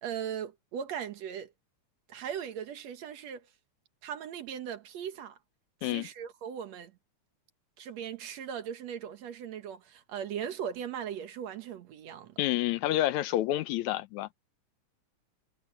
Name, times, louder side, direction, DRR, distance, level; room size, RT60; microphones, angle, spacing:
voice 1, 0.0-1.5 2.1-3.5 4.0-5.4 5.8-6.9 7.8-12.4, right 8 dB, 65° right, 2.3 m, -38 dB
voice 2, 12.4-14.3, left 14 dB, 80° left, 2.0 m, -29 dB
omnidirectional pair, 3.4 m